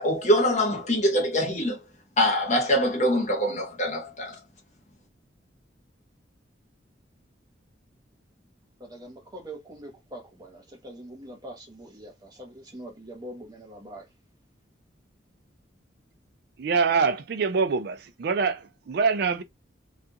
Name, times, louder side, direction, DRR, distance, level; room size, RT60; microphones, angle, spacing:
voice 1, 0.0-1.8 2.2-4.3, equal, 40° left, 1.0 m, -24 dB
voice 2, 8.8-14.0, right 1 dB, 20° right, 1.0 m, -43 dB
voice 3, 16.6-19.4, right 5 dB, 60° right, 0.4 m, -25 dB
2.4 x 2.3 x 2.7 m
head